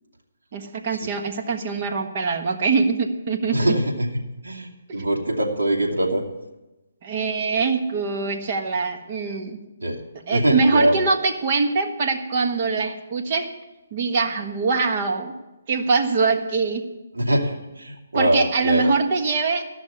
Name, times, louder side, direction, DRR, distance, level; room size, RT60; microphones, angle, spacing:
voice 1, 0.5-3.7 7.0-9.6 10.3-13.5 13.9-15.3 15.7-16.9 18.1-19.6, right 4 dB, 40° right, 5 dB, 1.3 m, -23 dB
voice 2, 3.5-4.1 4.4-6.2 9.8-10.0 10.3-11.1 17.1-18.9, right 1 dB, 85° right, 0 dB, 2.7 m, -22 dB
14.0 x 6.3 x 9.6 m, 1.0 s
hypercardioid pair, 155°, 0 cm